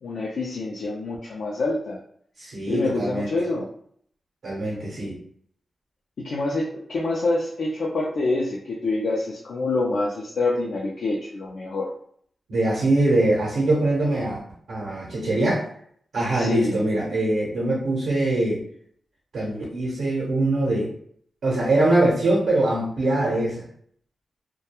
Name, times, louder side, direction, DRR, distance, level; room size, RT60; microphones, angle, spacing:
voice 1, 0.0-2.0 2.7-3.7 6.2-11.9 16.3-16.8, left 2 dB, 85° left, -3 dB, 0.4 m, -26 dB
voice 2, 2.4-3.3 4.4-5.2 12.5-14.4 14.7-15.7 16.1-18.7 19.3-20.9 21.4-23.7, right 1 dB, 85° right, -4 dB, 0.7 m, -23 dB
2.3 x 2.2 x 2.9 m, 0.63 s
cardioid pair, 80°, 0 cm